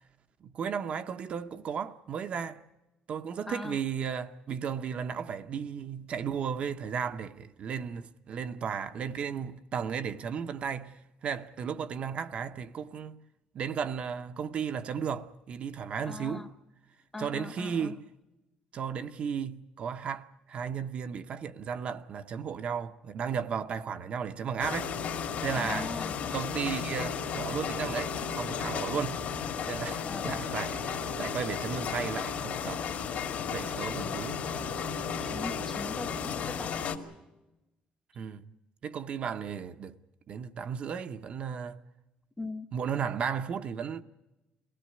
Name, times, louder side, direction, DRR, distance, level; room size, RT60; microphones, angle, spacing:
voice 1, 0.4-2.6 3.1-13.2 13.5-16.5 17.2-18.0 18.7-25.0 25.4-25.9 26.3-29.2 29.6-32.9 33.5-34.4 38.2-38.4 38.8-39.9 40.3-41.8 42.7-44.0, right 7 dB, 45° right, 0.7 m, -34 dB
voice 2, 3.5-3.8 16.1-16.5 17.1-18.0 25.5-26.1 30.1-30.4 34.0-34.3 35.2-36.9 42.4-42.7, left 2 dB, 10° left, 0.9 m, -40 dB
sound 1, 24.6-37.0, left 6 dB, 60° left, 2.0 m, -34 dB
23.0 x 16.5 x 9.6 m
cardioid pair, 160°, 3 cm